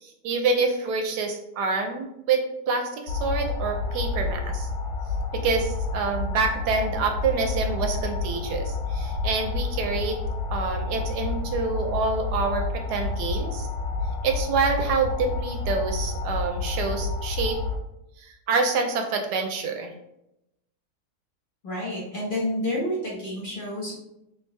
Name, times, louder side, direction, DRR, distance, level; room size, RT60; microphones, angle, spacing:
voice 1, 0.0-4.7 5.3-10.2 10.5-13.7 14.2-17.6 18.2-19.9, right 4 dB, 75° right, 4 dB, 1.1 m, -27 dB
sound 1, 3.1-17.8, left 3 dB, 75° left, 1.1 m, -29 dB
voice 2, 21.6-23.9, left 1 dB, 35° left, -6 dB, 1.2 m, -29 dB
3.2 x 3.1 x 3.1 m, 0.86 s
omnidirectional pair, 1.8 m